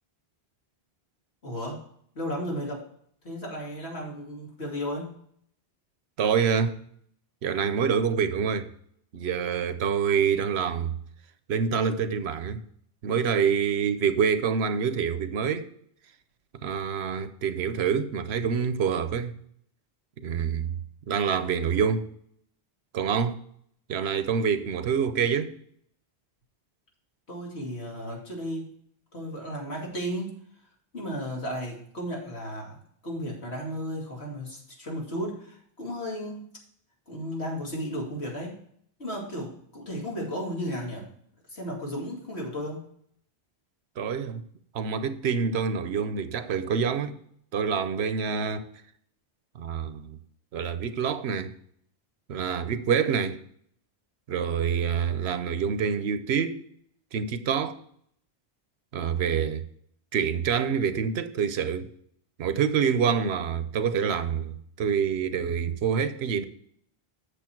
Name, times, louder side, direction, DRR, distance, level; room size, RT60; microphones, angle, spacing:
voice 1, 1.4-1.8 2.1-2.9 3.2-5.1 27.3-28.7 29.1-30.4 30.9-36.5 37.1-38.6 39.0-41.1 41.5-42.9, equal, 85° left, 2.8 m, -34 dB
voice 2, 6.2-6.8 7.4-8.7 9.1-10.9 11.5-12.6 13.0-15.7 16.6-19.4 20.2-20.8 21.1-22.1 22.9-23.4 23.9-25.6 44.0-44.4 44.7-47.2 47.5-48.7 49.6-50.2 50.5-51.5 52.3-53.4 54.3-56.6 57.1-57.8 58.9-59.6 60.1-61.9 62.4-66.4, right 7 dB, 85° right, 1.0 m, -26 dB
8.3 x 6.6 x 4.5 m
omnidirectional pair, 1.1 m